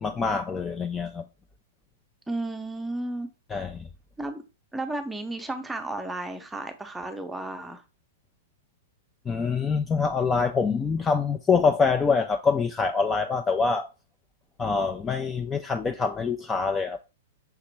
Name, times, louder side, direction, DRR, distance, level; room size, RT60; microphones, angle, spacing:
voice 1, 0.0-1.2 3.5-3.9 9.3-13.9 14.6-17.0, left 5 dB, 15° left, 0.4 m, -25 dB
voice 2, 2.3-3.3 4.2-4.4 4.7-7.8, right 2 dB, 10° right, 0.7 m, -33 dB
5.8 x 2.9 x 3.1 m
figure-of-eight pair, 105°, 0 cm